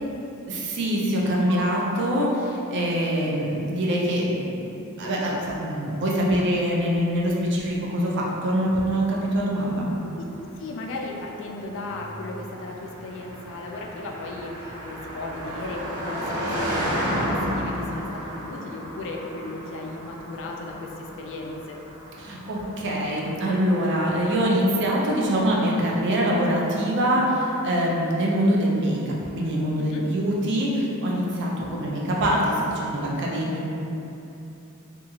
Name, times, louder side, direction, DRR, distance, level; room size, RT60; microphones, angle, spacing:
voice 1, 0.5-4.7 5.0-9.1 9.3-9.9 22.2-33.7, equal, 55° right, -3 dB, 0.5 m, -24 dB
Piano, 1.5-3.4 4.0-4.1, right 1 dB, 20° right, 1.0 m, -42 dB
Car passing by, 8.6-25.0, equal, 90° right, 1.1 m, -33 dB
voice 2, 10.6-21.8 29.8-30.0, left 2 dB, 60° left, 0 dB, 0.3 m, -36 dB
2.8 x 2.3 x 2.7 m, 2.9 s
head